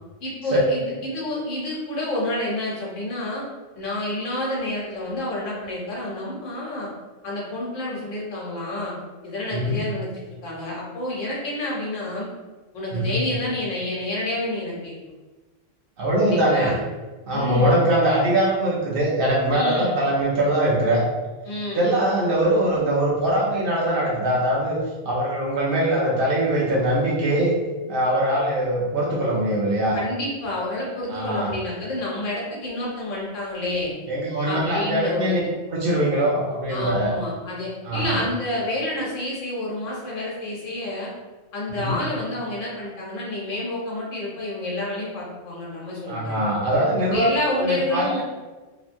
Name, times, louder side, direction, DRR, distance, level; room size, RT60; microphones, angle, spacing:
voice 1, 0.2-3.5 3.7-6.9 7.2-8.9 9.2-12.3 12.7-14.9 16.2-16.8 17.3-17.9 19.5-20.0 21.4-21.9 29.9-33.9 34.4-35.5 36.7-41.1 41.5-46.4 47.1-48.2, left 1 dB, 90° left, -5 dB, 1.2 m, -29 dB
voice 2, 16.0-16.7 17.3-21.0 21.7-24.8 25.0-27.5 27.9-30.0 31.1-31.5 34.1-35.4 35.7-37.1 37.9-38.2 41.7-42.0 46.1-47.3 47.5-48.2, right 1 dB, 55° right, -4 dB, 0.7 m, -22 dB
2.9 x 2.2 x 2.5 m, 1.2 s
omnidirectional pair, 1.3 m